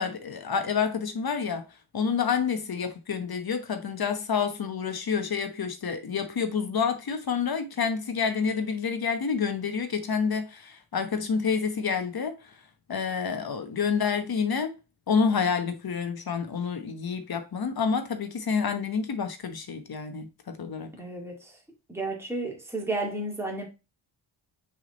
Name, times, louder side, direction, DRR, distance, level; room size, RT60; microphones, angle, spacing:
voice 1, 0.0-1.6 1.9-12.4 12.9-14.8 15.1-20.9, left 6 dB, 50° left, 1.1 m, -28 dB
voice 2, 21.0-21.6 21.9-23.7, right 2 dB, 5° right, 2.0 m, -32 dB
6.3 x 3.8 x 4.0 m
wide cardioid pair, 145°, 46 cm